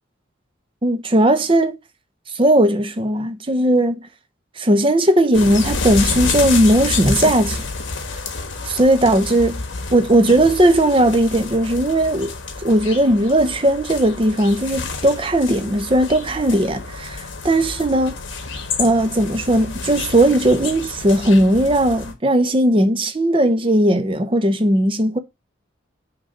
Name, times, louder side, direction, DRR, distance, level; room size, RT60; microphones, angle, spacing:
voice 1, 0.8-1.7 2.3-4.1 4.6-7.6 8.7-9.6 9.9-12.3 12.6-18.2 18.8-25.2, right 1 dB, 25° right, 0.6 m, -17 dB
sound 1, 5.3-22.1, left 4 dB, 70° left, 1.3 m, -29 dB
6.3 x 3.1 x 5.3 m
head